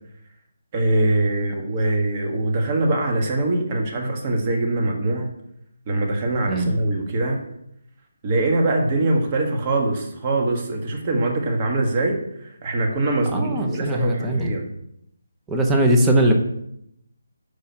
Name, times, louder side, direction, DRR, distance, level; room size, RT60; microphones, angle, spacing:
voice 1, 0.7-5.3 5.9-7.4 8.2-14.7, right 2 dB, 30° right, 1 dB, 1.3 m, -23 dB
voice 2, 13.3-14.5 15.5-16.3, right 1 dB, 10° right, 2 dB, 0.8 m, -20 dB
5.5 x 4.7 x 4.4 m, 0.77 s
figure-of-eight pair, 155°, 0 cm